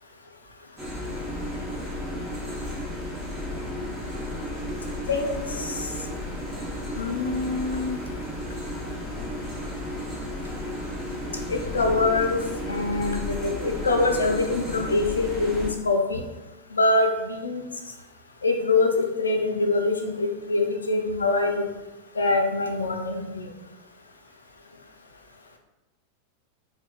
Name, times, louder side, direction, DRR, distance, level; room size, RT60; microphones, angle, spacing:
sound 1, 0.8-15.7, left 1 dB, 20° right, 0.9 m, -33 dB
voice 1, 5.1-5.8 7.0-8.0 11.5-12.4 12.7-16.2 16.7-17.6 18.4-21.6 22.2-23.4, left 3 dB, 75° left, 4 dB, 0.4 m, -24 dB
4.1 x 2.0 x 2.3 m, 1.1 s
figure-of-eight pair, 90°, 0 cm